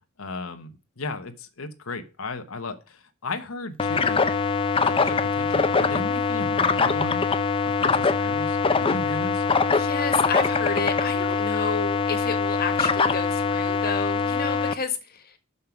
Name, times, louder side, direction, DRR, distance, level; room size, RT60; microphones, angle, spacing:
voice 1, 0.2-0.7 1.0-4.3 4.8-7.2 7.6-9.4, left 3 dB, 75° left, 1.1 m, -35 dB
sound 1, 3.8-14.7, left 5 dB, 25° left, 0.6 m, -23 dB
voice 2, 9.7-15.2, left 4 dB, 45° left, 1.5 m, -30 dB
6.5 x 5.5 x 5.8 m
head